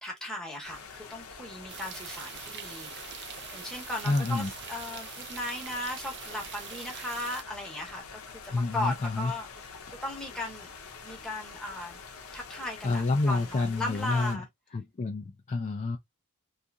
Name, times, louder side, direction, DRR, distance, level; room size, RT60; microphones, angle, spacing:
voice 1, 0.0-9.5 9.9-10.7 11.0-12.0 12.3-14.5, left 1 dB, 5° left, 0.8 m, -37 dB
sound 1, 0.6-14.4, left 5 dB, 70° left, 0.7 m, -46 dB
sound 2, 1.7-7.4, right 8 dB, 50° right, 0.4 m, -43 dB
voice 2, 4.0-4.5 8.5-9.3 12.8-14.4 14.7-16.0, left 3 dB, 30° left, 0.3 m, -28 dB
2.7 x 2.4 x 2.3 m
head